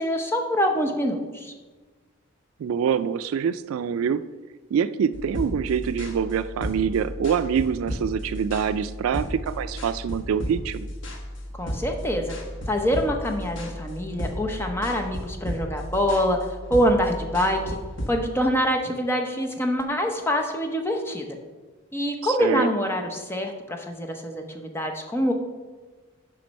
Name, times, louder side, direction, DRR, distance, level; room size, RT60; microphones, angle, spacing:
voice 1, 0.0-1.5 11.5-12.3 12.7-16.4 16.7-17.8 18.1-21.4 21.9-25.3, equal, 10° left, 4 dB, 0.7 m, -25 dB
voice 2, 2.6-4.2 4.7-10.9 22.2-22.7, right 7 dB, 85° right, 13 dB, 0.3 m, -25 dB
sound 1, 5.1-18.1, equal, 60° left, 1.2 m, -34 dB
7.5 x 5.2 x 5.3 m, 1.3 s
head